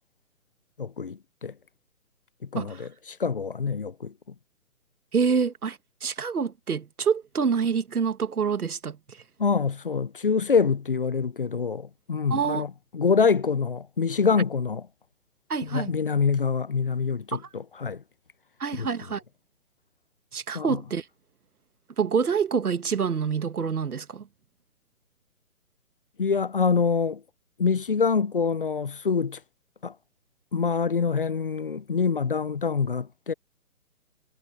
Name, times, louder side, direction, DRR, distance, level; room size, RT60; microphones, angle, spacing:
voice 1, 0.8-1.5 2.4-4.1 9.4-14.9 15.6-18.0 18.8-18.9 20.5-20.8 26.2-27.2 27.6-29.4 29.8-29.9 30.5-33.3, left 5 dB, 40° left, 0.4 m, -25 dB
voice 2, 2.5-2.9 5.1-9.2 12.3-12.6 15.5-15.9 17.3-17.4 18.6-19.2 20.3-21.0 22.0-24.3, right 6 dB, 90° right, 2.0 m, -27 dB
hypercardioid pair, 160°, 43 cm